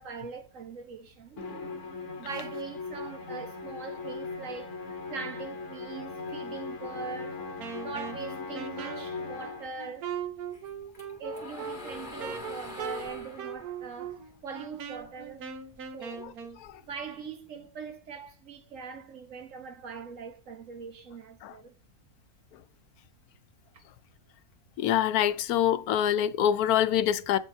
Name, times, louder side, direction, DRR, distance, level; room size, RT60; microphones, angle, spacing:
voice 1, 0.0-1.4 2.2-4.8 5.1-7.4 7.8-10.1 11.2-15.5 15.9-16.4 16.9-21.7 23.7-23.8, right 5 dB, 60° right, 1.4 m, -42 dB
Musical instrument, 1.4-9.9, left 4 dB, 55° left, 1.4 m, -39 dB
Wind instrument woodwind instrument, 7.6-16.6, right 6 dB, 90° right, 1.4 m, -40 dB
sound 1, 10.5-15.1 15.4-17.0, left 1 dB, 35° left, 1.9 m, -45 dB
voice 2, 24.8-27.4, left 10 dB, 85° left, 1.1 m, -25 dB
7.8 x 7.4 x 2.7 m
omnidirectional pair, 1.5 m